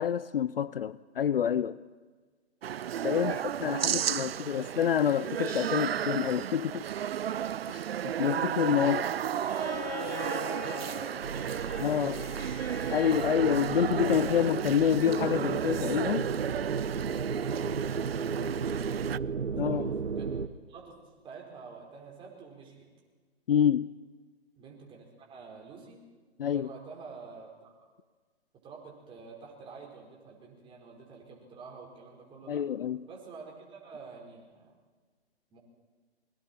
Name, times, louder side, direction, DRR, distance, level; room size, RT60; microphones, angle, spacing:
voice 1, 0.0-1.8 3.0-6.9 7.7-9.1 11.8-12.2 12.9-16.3 19.6-19.9 23.5-23.9 26.4-26.7 32.5-33.0, left 9 dB, 60° left, 0.6 m, -27 dB
sound 1, 2.6-19.2, right 10 dB, 65° right, 0.5 m, -33 dB
voice 2, 3.1-4.8 9.0-9.5 10.0-11.7 12.0-13.2 17.1-19.2 19.5-22.9 24.5-26.0 26.4-27.7 28.6-32.7 33.1-34.7 35.5-35.6, right 5 dB, 15° right, 4.4 m, -48 dB
Bowed string instrument, 9.4-14.5 15.9-16.0, left 7 dB, 45° left, 4.8 m, -43 dB
sound 2, 11.2-20.5, right 5 dB, 85° right, 1.1 m, -34 dB
28.0 x 22.5 x 4.4 m
figure-of-eight pair, 135°, 33 cm